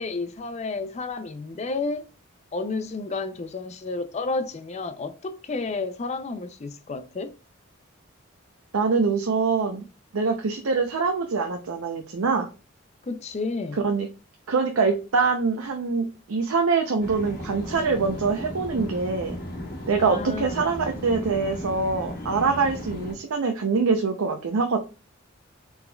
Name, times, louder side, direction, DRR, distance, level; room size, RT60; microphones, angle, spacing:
voice 1, 0.0-2.1 2.5-7.3 13.0-13.8 20.0-20.7, left 3 dB, 30° left, 0.4 m, -31 dB
voice 2, 8.7-9.8 10.1-12.5 13.8-14.1 14.5-19.4 19.9-24.8, right 4 dB, 90° right, 0.6 m, -24 dB
sound 1, 17.0-23.1, left 1 dB, 45° left, 0.9 m, -36 dB
4.2 x 3.4 x 2.2 m
head